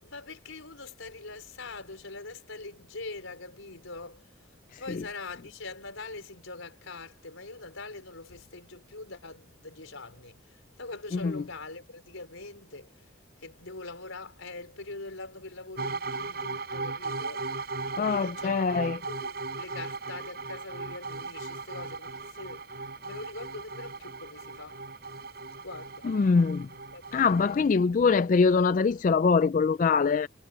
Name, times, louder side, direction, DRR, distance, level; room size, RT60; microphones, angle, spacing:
voice 1, 0.0-4.2 4.8-10.3 10.8-12.9 13.4-17.4 18.0-22.1 22.4-22.6 23.0-24.8 25.6-26.0 26.9-27.5 27.7-27.9 28.4-28.6, left 3 dB, 90° left, 5.0 m, -43 dB
voice 2, 11.1-11.4 18.0-19.0 26.0-26.7 27.1-30.3, left 5 dB, 40° left, 0.3 m, -23 dB
sound 1, 15.8-27.5, right 3 dB, 50° right, 6.6 m, -37 dB
head